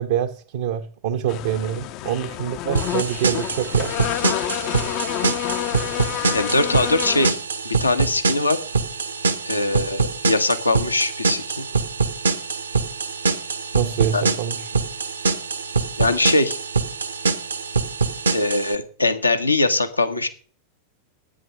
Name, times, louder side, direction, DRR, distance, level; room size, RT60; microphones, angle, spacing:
voice 1, 0.0-4.0 13.7-14.6, right 10 dB, 55° right, 0.8 m, -26 dB
sound 1, 1.3-7.3, left 13 dB, 40° left, 0.6 m, -28 dB
sound 2, 2.7-18.7, right 4 dB, 75° right, 1.2 m, -24 dB
voice 2, 6.3-7.4 7.6-8.6 9.4-11.7 14.1-14.2 16.0-16.6 18.3-20.3, left 2 dB, 85° left, 1.2 m, -21 dB
10.5 x 9.4 x 6.3 m
figure-of-eight pair, 90°, 0 cm